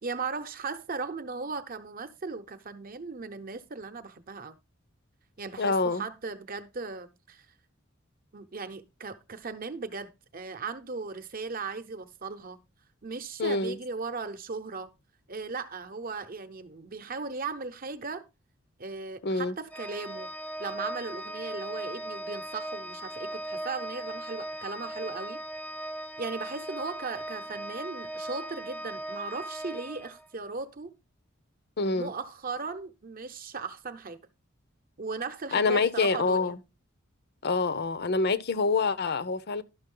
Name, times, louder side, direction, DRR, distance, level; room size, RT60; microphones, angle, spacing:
voice 1, 0.0-4.6 5.4-7.5 8.3-12.6 13.0-14.9 15.3-18.2 18.8-20.3 20.6-25.4 26.2-30.9 31.9-34.2 35.0-36.6, right 4 dB, 45° right, 0.8 m, -37 dB
voice 2, 5.6-6.0 13.4-13.8 19.2-19.6 31.8-32.1 35.5-36.6 37.4-39.6, left 4 dB, 50° left, 0.7 m, -26 dB
Organ, 19.7-30.6, right 1 dB, 5° left, 0.4 m, -38 dB
11.5 x 6.1 x 3.8 m
head